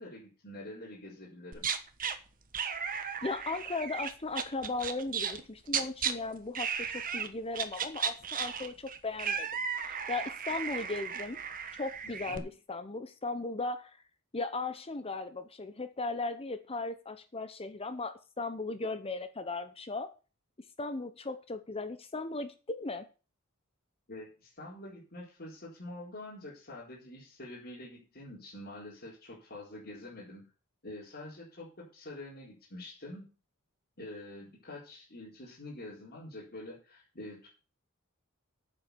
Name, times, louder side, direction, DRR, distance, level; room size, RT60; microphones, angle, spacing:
voice 1, 0.0-1.7 12.0-12.5 24.1-30.4 30.8-33.3 34.0-37.5, left 1 dB, 45° left, -7 dB, 4.1 m, -46 dB
sound 1, 1.5-2.2 2.5-6.1 6.6-7.3 7.5-12.4, right 7 dB, 40° right, 1.2 m, -35 dB
voice 2, 3.2-9.5 9.8-11.4 11.8-12.4 12.7-13.9 14.3-20.1 20.8-23.1, left 3 dB, 25° left, 11 dB, 0.8 m, -37 dB
9.2 x 7.6 x 6.9 m, 0.35 s
head